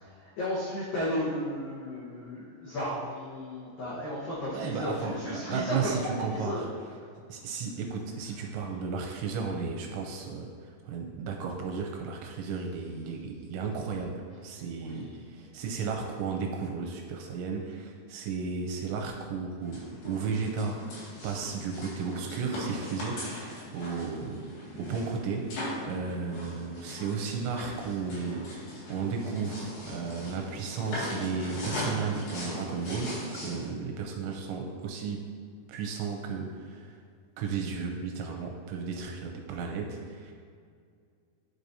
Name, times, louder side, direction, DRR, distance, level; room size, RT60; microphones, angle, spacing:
voice 1, 0.0-6.6 7.0-7.2 14.8-15.5, left 1 dB, 80° left, -8 dB, 2.0 m, -34 dB
voice 2, 4.5-6.7 7.3-24.5 24.8-28.5 28.9-35.3 35.7-37.0 37.4-40.3, right 5 dB, 80° right, 1 dB, 2.7 m, -34 dB
sound 1, 19.6-33.7, left 1 dB, 60° left, 3.4 m, -39 dB
12.5 x 4.9 x 2.7 m, 2.2 s
omnidirectional pair, 5.8 m